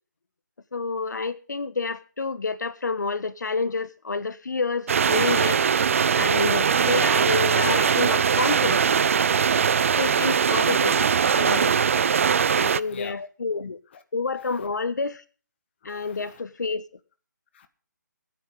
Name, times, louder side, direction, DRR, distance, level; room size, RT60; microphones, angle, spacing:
voice 1, 0.7-5.6 6.1-8.9 10.0-11.9 12.5-13.8 14.1-15.2 15.8-16.8, left 4 dB, 65° left, 1.4 m, -29 dB
sound 1, 4.9-12.8, right 7 dB, 45° right, 0.5 m, -21 dB
voice 2, 6.3-6.9 7.5-7.8 9.5-10.0 11.8-12.0 12.4-13.3 15.8-16.4 17.5-17.7, left 7 dB, 35° left, 1.4 m, -39 dB
22.5 x 9.9 x 3.8 m
figure-of-eight pair, 155°, 10 cm